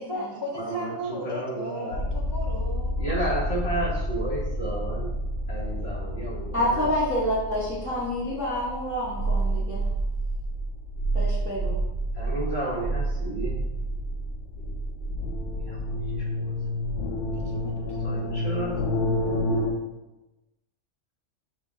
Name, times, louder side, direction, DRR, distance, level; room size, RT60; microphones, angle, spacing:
voice 1, 0.0-3.6 17.3-18.4, equal, 40° left, -3 dB, 0.3 m, -37 dB
voice 2, 0.5-2.0 3.0-5.1 5.5-6.9 12.1-13.6 15.7-16.6 18.0-18.7 19.3-19.6, right 1 dB, 60° left, -8 dB, 1.8 m, -32 dB
sound 1, 1.9-19.7, equal, 80° left, 0.9 m, -29 dB
voice 3, 6.5-9.8 11.1-11.8, equal, 5° right, -11 dB, 0.8 m, -28 dB
6.2 x 2.2 x 3.6 m, 1.0 s
omnidirectional pair, 1.2 m